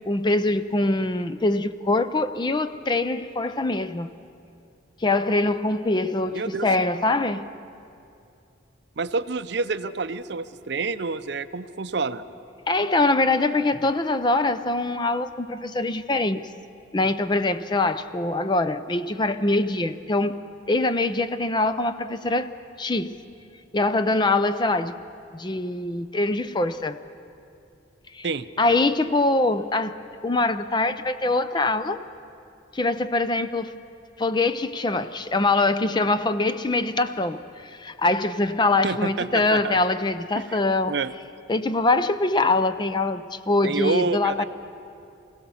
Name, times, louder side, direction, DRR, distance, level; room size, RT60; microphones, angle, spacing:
voice 1, 0.1-4.1 5.0-7.5 12.7-16.5 16.9-20.4 20.7-22.5 22.8-23.2 23.7-25.0 25.3-27.0 28.1-28.3 28.6-32.0 32.7-33.7 34.2-41.0 41.5-44.4, left 2 dB, 20° left, 12 dB, 0.5 m, -23 dB
voice 2, 6.3-6.7 9.0-12.2 28.2-28.5 38.8-39.8 40.3-40.6 40.9-41.1 43.6-44.4, right 4 dB, 55° right, 12 dB, 0.6 m, -28 dB
25.0 x 16.5 x 7.1 m, 2.6 s
head